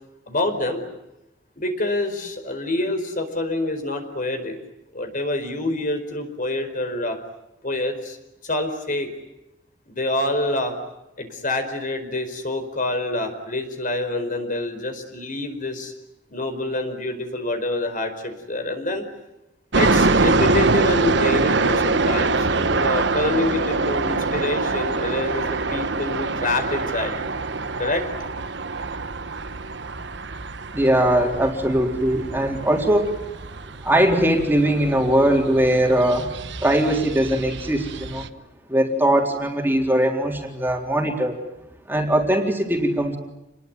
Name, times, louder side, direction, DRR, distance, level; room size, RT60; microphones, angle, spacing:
voice 1, 0.3-0.8 1.6-4.6 4.9-7.2 7.6-8.2 8.4-9.1 9.9-10.7 11.2-15.9 16.3-19.0 19.8-27.2 27.8-28.1, left 2 dB, 45° left, 7 dB, 4.8 m, -26 dB
sound 1, 19.7-38.3, right 3 dB, 70° right, 1.3 m, -24 dB
voice 2, 30.7-33.2 33.8-36.3 36.6-38.3 38.7-41.4 41.9-43.2, right 1 dB, 10° right, 2 dB, 3.7 m, -20 dB
29.0 x 21.5 x 9.5 m, 0.94 s
head